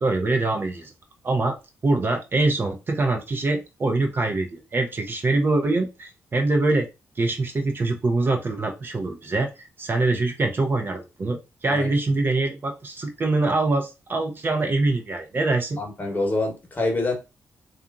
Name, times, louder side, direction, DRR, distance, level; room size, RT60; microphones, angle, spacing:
voice 1, 0.0-0.9 1.2-1.6 1.8-6.9 7.2-9.5 9.8-15.8, right 2 dB, 35° right, 4 dB, 0.5 m, -24 dB
voice 2, 15.8-17.1, left 2 dB, 30° left, 2 dB, 1.0 m, -26 dB
2.8 x 2.4 x 2.4 m, 0.26 s
cardioid pair, 90°, 6 cm